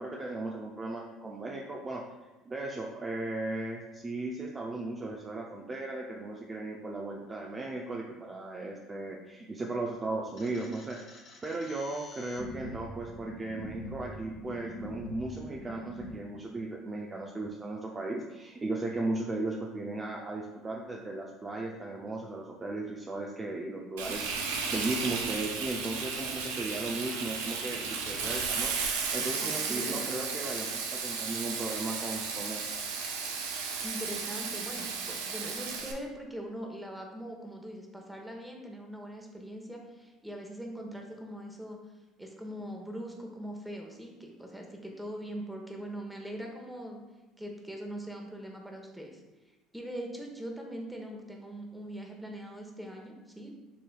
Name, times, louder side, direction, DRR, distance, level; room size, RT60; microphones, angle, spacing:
voice 1, 0.0-2.0 2.4-11.0 11.4-28.7 29.1-32.7, right 2 dB, 25° right, -1 dB, 0.5 m, -36 dB
sound 1, 10.4-16.2, equal, 45° left, 1.0 m, -44 dB
Frying (food), 24.0-35.9, right 5 dB, 80° right, 0.6 m, -34 dB
voice 2, 29.4-30.1 33.6-41.8 42.2-47.0 47.4-49.2 49.7-53.6, equal, 5° right, 1 dB, 1.0 m, -41 dB
6.9 x 3.1 x 2.3 m, 1.1 s
hypercardioid pair, 75°, 0 cm